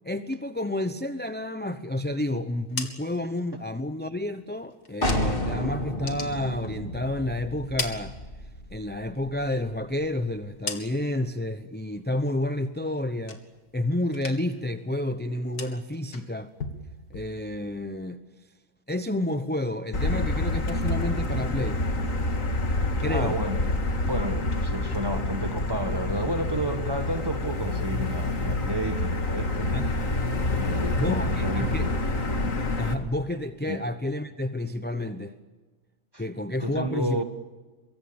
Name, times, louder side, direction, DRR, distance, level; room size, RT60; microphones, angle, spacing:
voice 1, 0.0-8.1 8.7-13.4 13.7-16.5 17.1-18.2 18.9-21.8 23.0-23.4 29.7-29.9 31.0-31.9 32.8-35.3 36.2-37.2, left 1 dB, 10° left, 9 dB, 0.6 m, -30 dB
sound 1, 2.5-5.6 5.9-7.2 7.5-8.8 9.2-11.3 11.7-12.1 12.5-13.8 14.1-14.7 14.9-17.8, left 4 dB, 85° left, 2.7 m, -40 dB
sound 2, 5.0-10.6, equal, 35° left, 3.2 m, -32 dB
Motor vehicle (road), 19.9-32.9, left 2 dB, 60° left, 2.5 m, -27 dB
voice 2, 23.1-23.6 24.0-29.9 30.5-32.0 33.7-33.8 36.1-36.2 36.6-37.2, right 1 dB, 15° right, 8 dB, 1.6 m, -31 dB
24.5 x 23.5 x 7.2 m, 1.3 s
omnidirectional pair, 1.6 m